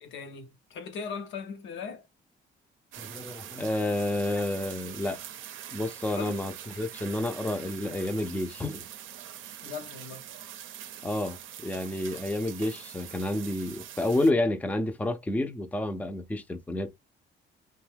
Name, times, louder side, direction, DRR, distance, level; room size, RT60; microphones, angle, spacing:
voice 1, 0.0-2.1 6.2-6.4 9.6-10.2, left 5 dB, 70° left, 0.7 m, -39 dB
sound 1, 2.9-14.3, right 10 dB, 80° right, 0.5 m, -44 dB
voice 2, 3.0-5.2 5.7-6.5 6.8-8.8 11.0-16.9, left 1 dB, 5° left, 0.5 m, -30 dB
2.7 x 2.2 x 3.3 m
cardioid pair, 90°, 20 cm